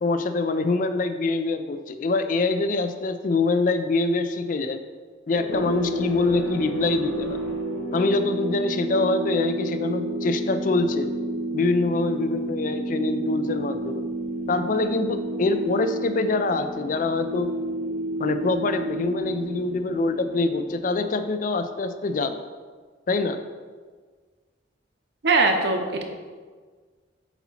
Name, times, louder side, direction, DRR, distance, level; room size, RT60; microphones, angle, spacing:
voice 1, 0.0-4.8 5.3-7.4 7.9-11.1 11.5-14.0 14.5-17.5 18.2-22.4 23.1-23.4, left 3 dB, 40° left, 9 dB, 0.3 m, -24 dB
sound 1, 5.3-21.6, right 1 dB, 65° left, 1.4 m, -31 dB
voice 2, 25.2-26.0, right 3 dB, 55° right, 4 dB, 0.7 m, -21 dB
8.0 x 2.8 x 4.2 m, 1.5 s
head